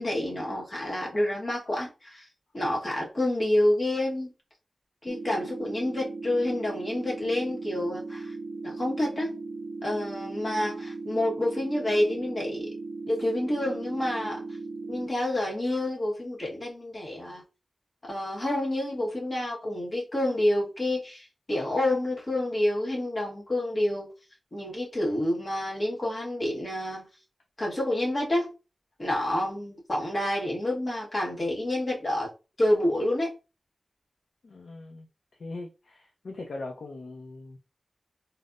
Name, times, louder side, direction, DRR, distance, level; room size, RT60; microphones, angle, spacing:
voice 1, 0.0-2.2 2.5-4.3 5.0-8.3 8.6-9.4 9.8-12.7 13.1-14.4 14.9-17.4 18.0-24.1 24.5-27.1 27.6-28.5 29.0-32.3 32.6-33.4, left 1 dB, 40° left, 1.1 m, -28 dB
sound 1, 5.1-15.1, right 3 dB, 55° right, 0.4 m, -37 dB
voice 2, 34.4-35.1 35.4-37.6, left 2 dB, 85° left, 0.5 m, -40 dB
4.0 x 2.0 x 2.4 m
wide cardioid pair, 100°, 0 cm